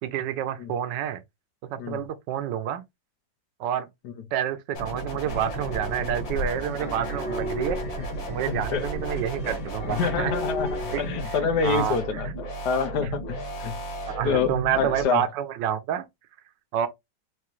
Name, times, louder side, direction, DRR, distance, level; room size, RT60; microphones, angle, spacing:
voice 1, 0.0-1.2 1.7-2.8 3.6-3.9 4.3-7.8 8.3-10.3 10.9-11.0 11.4-12.2 14.1-16.0 16.7-16.9, right 10 dB, 75° right, 1.3 m, -28 dB
sound 1, 4.7-15.0, right 1 dB, 85° left, 2.3 m, -35 dB
sound 2, 5.3-11.2, equal, 50° left, 2.2 m, -34 dB
voice 2, 8.5-8.8 9.9-13.7 14.2-15.2, left 6 dB, 70° left, 1.2 m, -27 dB
4.8 x 2.7 x 3.0 m
omnidirectional pair, 2.0 m